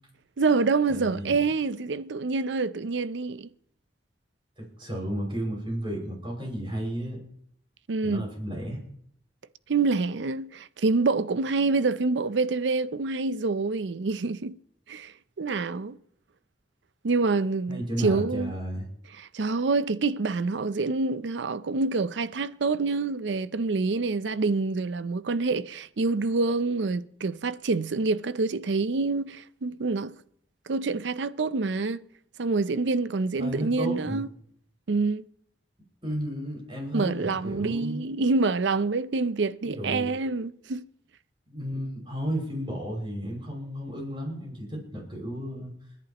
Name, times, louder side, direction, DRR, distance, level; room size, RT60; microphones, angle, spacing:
voice 1, 0.4-3.5 7.9-8.3 9.7-14.6 14.9-15.1 15.4-15.9 17.0-18.5 19.2-30.1 30.7-32.0 32.4-34.3 34.9-35.3 36.9-40.8, right 3 dB, 90° right, 0.6 m, -26 dB
voice 2, 0.9-1.3 4.6-7.2 8.0-8.8 17.7-18.9 33.4-34.2 36.0-38.0 39.6-40.1 41.5-45.7, equal, 30° right, 5.9 m, -33 dB
29.0 x 11.0 x 3.0 m
head